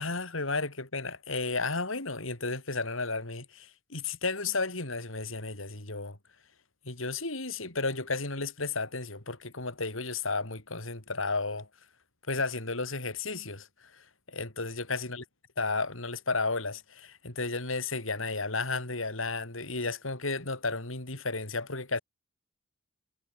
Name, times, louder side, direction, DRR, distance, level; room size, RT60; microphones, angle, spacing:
voice 1, 0.0-6.2 6.8-11.7 12.3-13.7 13.9-15.2 15.6-22.0, left 3 dB, 80° left, 4.9 m, -33 dB
head